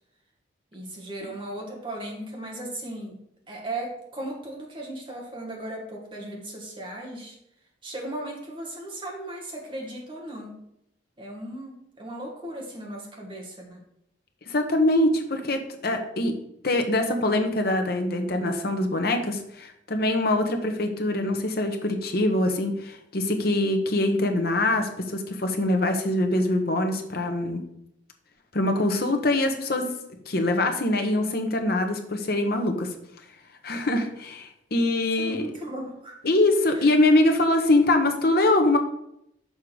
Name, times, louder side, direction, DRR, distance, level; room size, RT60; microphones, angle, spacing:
voice 1, 0.7-7.4 7.8-10.5 11.2-13.8 35.2-36.2 36.7-37.1, right 1 dB, 25° right, -1 dB, 1.6 m, -37 dB
voice 2, 14.5-16.4 16.6-27.7 28.5-29.9 30.3-32.9 33.6-35.5 36.2-38.8, left 1 dB, 55° left, 5 dB, 0.9 m, -23 dB
6.5 x 3.7 x 6.2 m, 0.77 s
head